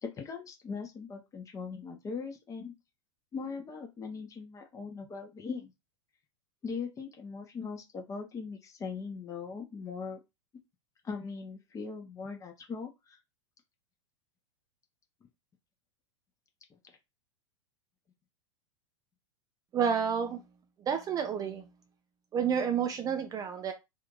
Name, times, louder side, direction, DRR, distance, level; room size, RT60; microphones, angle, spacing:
voice 1, 0.0-2.7 3.3-5.7 6.6-10.2 11.0-13.2, left 5 dB, 20° left, 0.9 m, -40 dB
voice 2, 19.7-20.4 20.8-21.7 22.3-23.7, right 7 dB, 25° right, 0.5 m, -30 dB
2.8 x 2.6 x 3.7 m
figure-of-eight pair, 90°, 16 cm